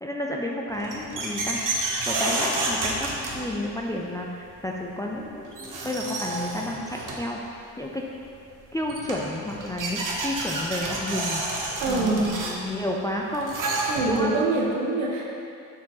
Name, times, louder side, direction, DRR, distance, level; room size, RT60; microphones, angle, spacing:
voice 1, 0.0-1.6 2.1-8.1 8.7-13.6 14.0-14.3, left 1 dB, 5° left, -1 dB, 0.4 m, -31 dB
sound 1, 0.7-3.8 5.1-5.2 5.5-7.3 8.5-8.6 8.9-14.4, right 2 dB, 40° right, 1.2 m, -30 dB
voice 2, 11.8-12.3 13.9-15.3, right 2 dB, 65° right, -2 dB, 1.1 m, -24 dB
6.8 x 4.4 x 3.8 m, 2.5 s
figure-of-eight pair, 45°, 49 cm